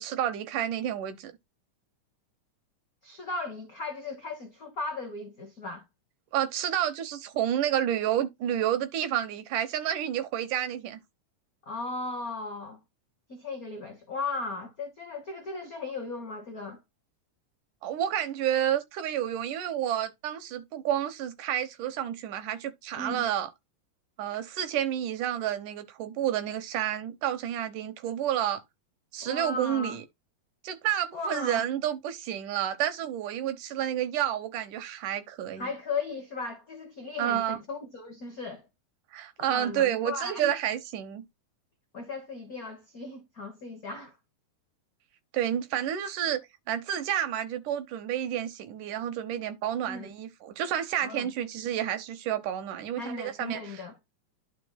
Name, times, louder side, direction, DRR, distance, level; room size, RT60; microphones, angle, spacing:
voice 1, 0.0-1.3 6.3-11.0 17.8-23.5 24.2-28.6 29.1-30.0 30.6-35.7 37.2-37.6 39.1-41.2 45.3-46.4 46.7-53.8, right 11 dB, 85° right, 2.6 m, -30 dB
voice 2, 3.0-5.8 11.7-12.8 13.3-16.8 23.0-23.3 29.2-30.0 31.1-31.6 35.6-38.7 39.4-40.5 41.9-44.1 49.9-50.1 51.0-51.3 53.0-54.0, left 3 dB, 85° left, 0.7 m, -36 dB
11.5 x 5.2 x 2.2 m
omnidirectional pair, 3.5 m